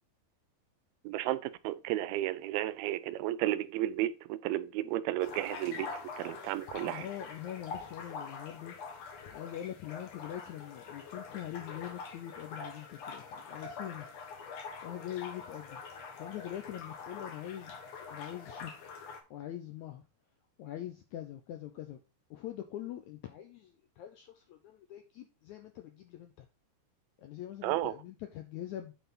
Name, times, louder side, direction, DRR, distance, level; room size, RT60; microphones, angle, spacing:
voice 1, 1.0-7.1 27.6-27.9, right 14 dB, 90° right, 2.5 m, -33 dB
sound 1, 5.2-19.2, left 5 dB, 60° left, 2.0 m, -45 dB
voice 2, 6.8-8.8 9.3-14.1 14.8-15.8 16.2-17.8 18.1-18.7 19.3-20.0 20.6-22.0 22.3-26.5 27.2-28.9, left 12 dB, 80° left, 1.7 m, -43 dB
8.9 x 4.7 x 3.8 m
omnidirectional pair, 4.3 m